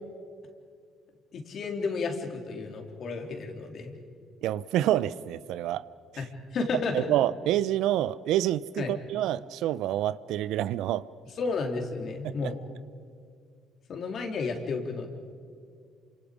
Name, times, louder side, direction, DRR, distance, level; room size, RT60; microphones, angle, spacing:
voice 1, 1.3-4.0 6.2-6.3 6.5-7.1 8.8-8.9 11.4-12.6 13.9-15.1, left 4 dB, 55° left, 3 dB, 3.5 m, -32 dB
voice 2, 4.4-5.8 6.1-6.2 6.9-11.0 12.2-12.5, right 13 dB, 80° right, 17 dB, 0.6 m, -27 dB
28.0 x 25.5 x 5.1 m, 2.2 s
supercardioid pair, 80°, 0 cm